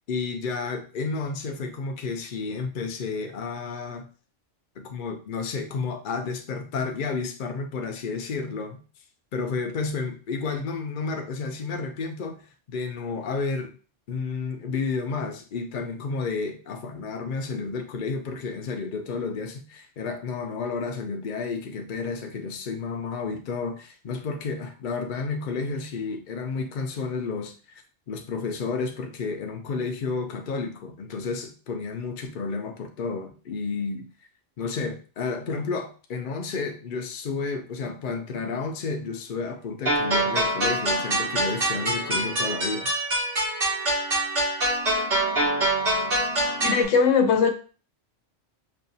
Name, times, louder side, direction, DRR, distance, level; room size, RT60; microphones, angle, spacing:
voice 1, 0.1-4.1 4.8-8.8 9.3-12.4 12.7-13.7 14.1-27.8 28.1-34.1 34.6-42.9, left 4 dB, 50° left, 4 dB, 0.7 m, -31 dB
sound 1, 39.9-46.9, right 1 dB, 70° right, 2.7 m, -25 dB
voice 2, 46.6-47.5, left 5 dB, 85° left, 5 dB, 1.0 m, -20 dB
5.4 x 2.4 x 2.7 m, 0.37 s
omnidirectional pair, 1.2 m